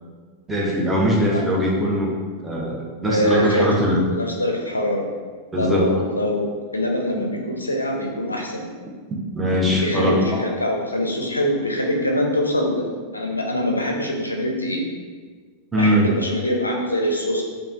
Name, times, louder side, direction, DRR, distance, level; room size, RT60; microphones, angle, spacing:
voice 1, 0.5-2.1 2.4-4.0 5.5-5.9 9.3-10.4 15.7-16.1, equal, 10° right, -4 dB, 0.6 m, -21 dB
voice 2, 3.1-3.7 4.2-5.1 5.5-8.6 9.6-14.8 15.8-17.4, left 1 dB, 80° left, 0 dB, 0.4 m, -24 dB
3.2 x 2.1 x 2.5 m, 1.5 s
figure-of-eight pair, 90°, 0 cm